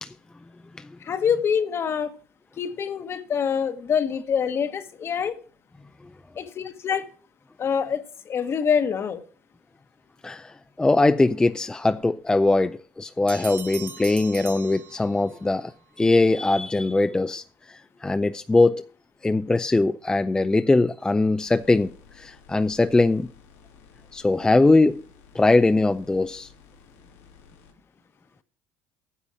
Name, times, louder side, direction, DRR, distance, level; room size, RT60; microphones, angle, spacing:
voice 1, 1.0-2.1 2.6-5.3 6.4-7.1 7.6-9.2, left 7 dB, 40° left, 1.2 m, -25 dB
voice 2, 10.2-15.7 16.0-18.8 19.2-21.9 22.2-23.3 24.1-25.0 25.3-26.5, left 2 dB, 10° left, 0.4 m, -21 dB
sound 1, 13.3-15.5, right 5 dB, 35° right, 1.1 m, -40 dB
sound 2, 21.5-27.7, left 6 dB, 90° left, 2.7 m, -53 dB
9.9 x 7.0 x 6.1 m
supercardioid pair, 90°, 6 cm